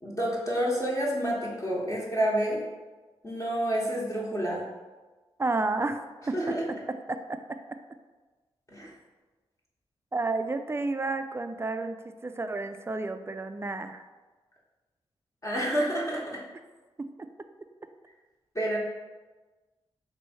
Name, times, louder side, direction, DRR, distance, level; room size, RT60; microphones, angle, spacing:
voice 1, 0.0-2.6 3.2-4.6 6.3-6.6 8.7-8.9 15.4-16.4 18.5-18.8, right 1 dB, 30° left, -5 dB, 1.0 m, -29 dB
voice 2, 5.4-6.3 7.1-7.4 10.1-14.0, right 3 dB, 25° right, 8 dB, 0.3 m, -31 dB
3.1 x 2.7 x 4.4 m, 1.3 s
supercardioid pair, 45°, 11 cm